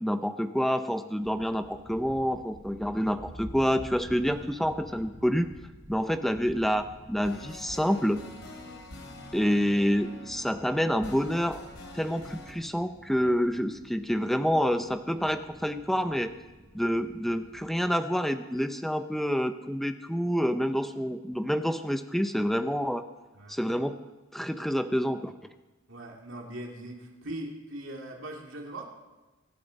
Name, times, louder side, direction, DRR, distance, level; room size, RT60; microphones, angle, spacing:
voice 1, 0.0-5.5 5.9-8.2 9.3-11.6 11.9-16.3 16.7-23.0 23.5-24.0 24.3-25.3, equal, ahead, 8 dB, 0.7 m, -28 dB
sound 1, 1.2-17.9, equal, 40° right, 3.2 m, -50 dB
sound 2, 7.2-12.5, left 2 dB, 75° left, 2.7 m, -45 dB
voice 2, 25.9-28.9, right 1 dB, 65° right, 0 dB, 2.7 m, -41 dB
24.5 x 11.5 x 4.2 m, 1.2 s
head